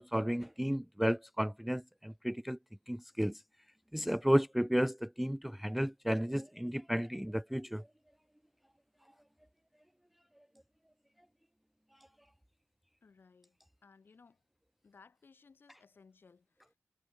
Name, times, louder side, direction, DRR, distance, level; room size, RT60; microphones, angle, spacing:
voice 1, 0.0-2.6 2.9-3.4 3.9-7.8, equal, ahead, 0.3 m, -32 dB
voice 2, 13.0-14.4 14.8-16.8, left 5 dB, 45° left, 6.9 m, -62 dB
wide cardioid pair, 125°, 5 cm